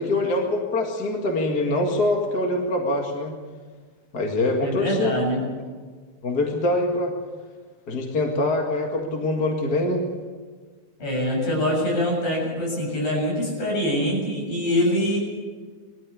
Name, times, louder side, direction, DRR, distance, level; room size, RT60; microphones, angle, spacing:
voice 1, 0.0-3.3 4.1-5.1 6.2-7.1 7.9-10.0, left 2 dB, 35° left, 1 dB, 2.3 m, -24 dB
voice 2, 4.6-5.4 11.0-15.2, equal, 60° left, -1 dB, 8.4 m, -24 dB
22.0 x 14.5 x 8.3 m, 1.5 s
omnidirectional pair, 3.5 m